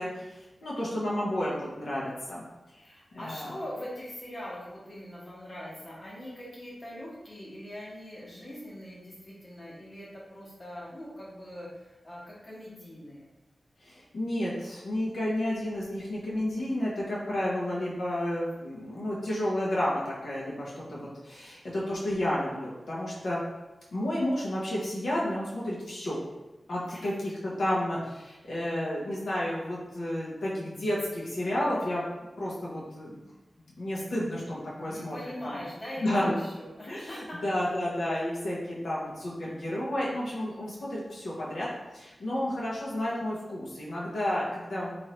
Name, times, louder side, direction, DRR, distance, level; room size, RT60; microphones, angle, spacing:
voice 1, 0.0-2.4 2.7-2.8 3.1-3.5 13.8-23.4 23.9-26.2 26.7-32.0 32.4-33.2 33.8-35.2 35.4-35.6 36.0-36.4 36.9-41.7 41.9-44.9, left 1 dB, 75° left, -6 dB, 0.7 m, -31 dB
voice 2, 2.8-13.2 26.9-27.1 34.8-37.6, equal, 35° left, -7 dB, 1.0 m, -42 dB
3.1 x 2.5 x 2.9 m, 1.0 s
wide cardioid pair, 115°, 0 cm